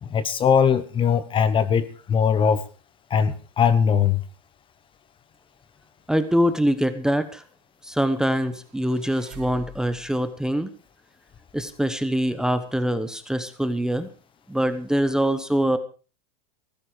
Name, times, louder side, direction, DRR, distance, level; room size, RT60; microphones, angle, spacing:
voice 1, 0.0-2.6 3.1-4.2, left 7 dB, 25° left, 15 dB, 1.2 m, -20 dB
voice 2, 6.1-7.4 7.8-10.7 11.5-14.1 14.5-15.8, equal, 5° right, 10 dB, 1.2 m, -24 dB
sound 1, 8.5-10.2, right 2 dB, 50° right, 4.8 m, -44 dB
17.0 x 14.5 x 4.8 m, 0.36 s
supercardioid pair, 140°, 21 cm